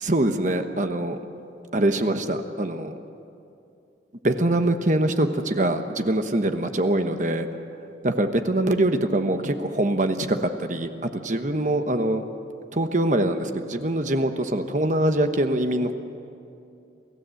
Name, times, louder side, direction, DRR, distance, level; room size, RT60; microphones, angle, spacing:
voice 1, 0.0-1.2 1.7-2.9 4.2-7.5 8.0-12.2 12.7-15.9, right 1 dB, 40° right, 7 dB, 1.1 m, -23 dB
28.5 x 16.0 x 7.8 m, 2.6 s
head